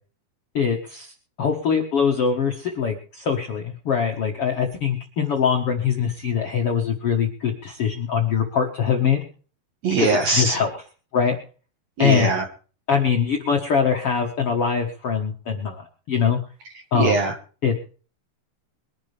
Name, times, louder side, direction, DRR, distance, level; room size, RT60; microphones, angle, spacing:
voice 1, 0.5-1.1 1.4-9.2 9.9-10.8 11.1-11.3 12.0-12.4 12.9-15.8 16.1-16.4 16.9-17.2 17.6-17.7, left 7 dB, 70° left, 1 dB, 1.4 m, -22 dB
voice 2, 9.8-10.6 12.0-12.4 16.9-17.3, right 3 dB, 60° right, 5 dB, 1.9 m, -21 dB
23.5 x 11.0 x 3.4 m, 0.39 s
omnidirectional pair, 4.9 m